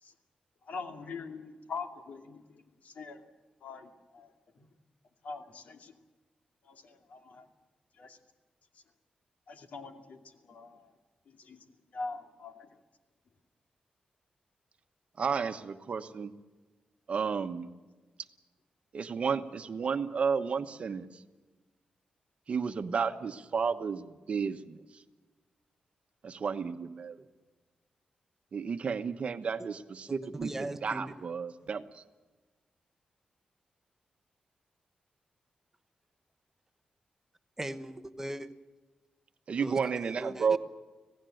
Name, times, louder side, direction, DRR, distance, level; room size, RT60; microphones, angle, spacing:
voice 1, 0.7-3.2 3.6-4.3 5.2-5.9 6.7-7.5 8.0-8.2 9.5-10.2 10.5-10.9 11.4-11.6 11.9-12.7, left 4 dB, 70° left, 5 dB, 2.5 m, -43 dB
voice 2, 15.2-16.3 17.1-17.7 18.9-21.1 22.5-24.8 26.2-27.1 28.5-32.0 39.5-40.6, right 6 dB, 50° right, 9 dB, 1.1 m, -32 dB
voice 3, 30.1-31.1 37.6-38.5 39.6-39.8 40.0-40.6, right 1 dB, 15° right, 10 dB, 1.0 m, -39 dB
26.0 x 17.0 x 7.9 m, 1.3 s
wide cardioid pair, 135°, 3 cm